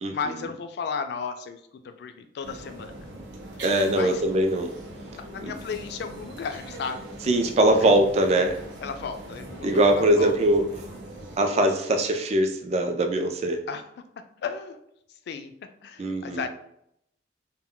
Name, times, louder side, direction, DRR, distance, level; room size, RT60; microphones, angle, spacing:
voice 1, 0.1-3.1 3.9-4.2 5.2-7.1 7.8-7.9 8.8-10.4 13.7-13.8 14.4-14.8 15.3-15.5 15.8-16.5, left 5 dB, 65° left, 8 dB, 0.3 m, -34 dB
sound 1, 2.4-11.4, right 1 dB, 80° right, 0.6 m, -41 dB
voice 2, 3.6-4.7 5.4-5.5 7.3-8.6 9.6-10.6 11.4-13.6 16.0-16.5, right 1 dB, 35° right, 5 dB, 0.3 m, -22 dB
2.1 x 2.1 x 3.6 m, 0.74 s
head